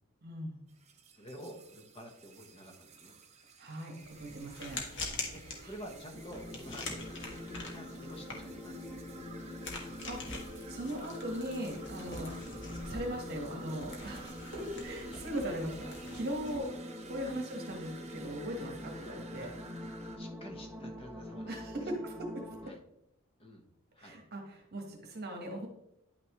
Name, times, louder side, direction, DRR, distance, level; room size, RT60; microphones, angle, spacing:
voice 1, 0.2-0.6 3.6-4.8 9.3-9.8 10.1-10.2 10.7-12.3 12.8-16.7 17.1-19.5 21.5-22.5 24.0-25.7, equal, 50° right, 2 dB, 1.5 m, -39 dB
sound 1, 0.7-20.2, right 4 dB, 30° right, 0.9 m, -54 dB
voice 2, 1.1-3.2 5.3-9.6 15.1-15.2 17.3-17.5 19.4-19.5 20.1-21.9 22.6-22.8 23.4-23.7 23.9-24.2, equal, 25° left, 2 dB, 1.2 m, -50 dB
sound 2, 4.0-16.6, left 2 dB, 60° left, 1.7 m, -45 dB
sound 3, 6.1-22.7, left 1 dB, 5° right, 0.7 m, -45 dB
10.0 x 6.0 x 3.2 m, 0.82 s
head